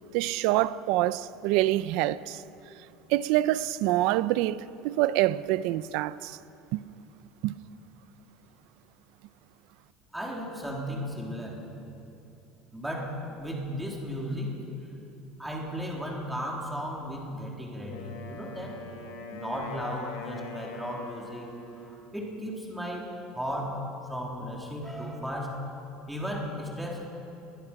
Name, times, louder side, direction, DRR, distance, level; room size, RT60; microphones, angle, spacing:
voice 1, 0.1-2.4 3.1-6.4 6.7-6.8 7.4-7.5, right 15 dB, 60° right, 0.6 m, -26 dB
voice 2, 10.1-11.6 12.7-14.5 15.4-18.7 19.3-21.5 21.8-23.1 23.3-23.8 24.1-25.6 26.1-27.1, equal, 5° right, 3.5 m, -35 dB
Wind instrument woodwind instrument, 17.9-22.1, left 3 dB, 90° left, 5.4 m, -42 dB
29.5 x 22.0 x 6.0 m
cardioid pair, 170°, 0 cm